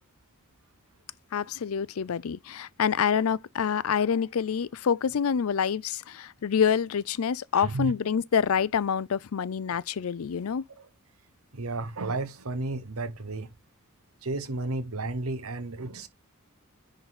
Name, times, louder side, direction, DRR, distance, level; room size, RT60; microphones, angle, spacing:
voice 1, 1.3-10.6, left 7 dB, 70° left, 0.5 m, -27 dB
voice 2, 7.6-7.9 10.8-10.9 11.5-13.5 14.2-16.1, right 2 dB, 75° right, 1.1 m, -32 dB
10.5 x 4.0 x 4.1 m
head